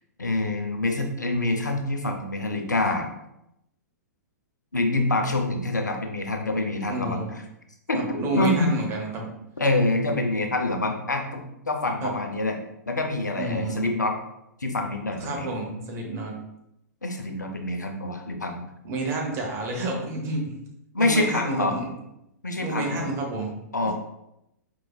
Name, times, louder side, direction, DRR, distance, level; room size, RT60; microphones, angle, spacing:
voice 1, 0.2-3.1 4.7-7.4 7.9-8.9 9.6-12.6 12.9-14.2 14.6-15.5 17.0-18.6 20.9-21.8 22.4-23.1 23.7-23.9, left 2 dB, 85° left, 4 dB, 0.6 m, -26 dB
voice 2, 6.8-7.3 7.9-9.3 12.0-12.1 13.4-13.8 15.2-16.4 18.8-20.6 21.0-21.9 22.6-23.6 23.8-23.9, right 2 dB, 30° right, 0 dB, 0.9 m, -30 dB
4.6 x 3.0 x 2.3 m, 0.83 s
figure-of-eight pair, 110°, 9 cm